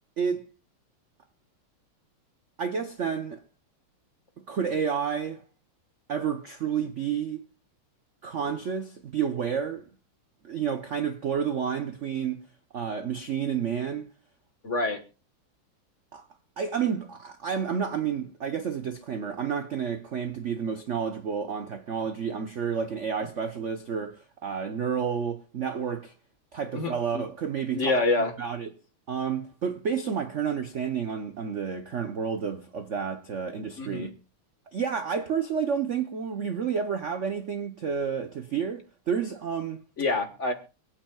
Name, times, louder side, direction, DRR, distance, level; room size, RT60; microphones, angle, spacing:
voice 1, 2.6-3.4 4.5-5.4 6.1-7.5 8.2-9.8 10.4-12.4 12.7-14.1 16.1-16.2 16.6-26.1 26.5-28.7 29.1-34.1 34.7-39.8, right 7 dB, 75° right, 0.6 m, -30 dB
voice 2, 14.6-15.0 26.7-27.2 27.7-28.3 33.8-34.1 40.0-40.5, left 3 dB, 40° left, 1.5 m, -26 dB
26.5 x 9.1 x 2.3 m
omnidirectional pair, 2.4 m